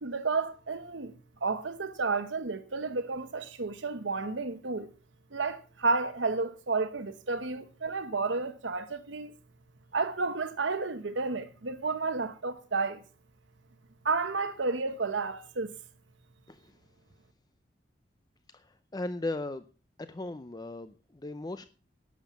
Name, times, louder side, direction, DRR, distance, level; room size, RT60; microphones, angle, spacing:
voice 1, 0.0-1.1 1.4-4.9 5.3-9.3 9.9-13.0 14.0-15.7, right 4 dB, 75° right, 1.0 m, -31 dB
voice 2, 16.5-16.8 18.5-19.7 20.0-21.7, left 2 dB, 20° left, 0.5 m, -37 dB
11.5 x 7.3 x 7.2 m
head